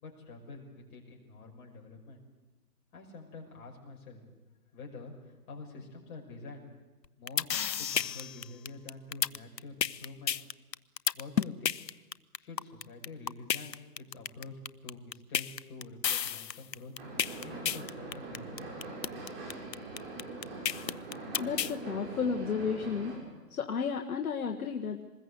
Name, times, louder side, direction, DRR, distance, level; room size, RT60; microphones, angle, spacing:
voice 1, 0.0-2.2 2.9-4.2 4.7-6.6 7.2-7.5 7.8-10.4 11.1-11.8 12.4-16.9 17.4-18.7, left 3 dB, 30° left, -1 dB, 5.9 m, -47 dB
sound 1, 7.0-21.7, left 9 dB, 90° left, 0.8 m, -31 dB
sound 2, 17.0-23.2, right 2 dB, 35° right, 7.9 m, -42 dB
voice 2, 21.4-23.2 23.5-25.0, left 6 dB, 60° left, 3 dB, 1.7 m, -33 dB
25.0 x 20.5 x 8.2 m, 1.2 s
hypercardioid pair, 150°, 49 cm